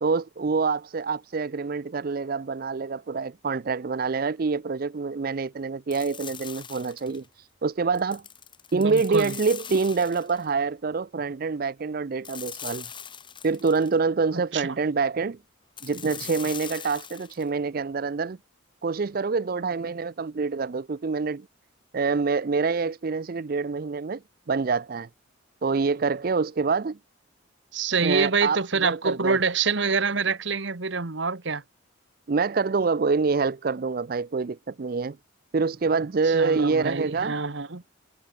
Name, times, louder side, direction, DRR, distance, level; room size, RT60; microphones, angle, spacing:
voice 1, 0.0-8.2 8.7-12.9 13.4-15.4 15.8-18.4 18.8-21.5 21.9-24.2 24.5-25.1 25.6-27.0 28.0-29.4 32.3-35.2 35.5-37.4, right 4 dB, 45° right, 0.4 m, -26 dB
sound 1, 5.9-7.3 8.0-10.5 12.2-14.0 15.8-17.5, left 8 dB, 25° left, 3.4 m, -41 dB
voice 2, 8.7-9.3 14.3-14.6 27.7-31.6 36.3-37.8, right 4 dB, 60° right, 1.3 m, -26 dB
head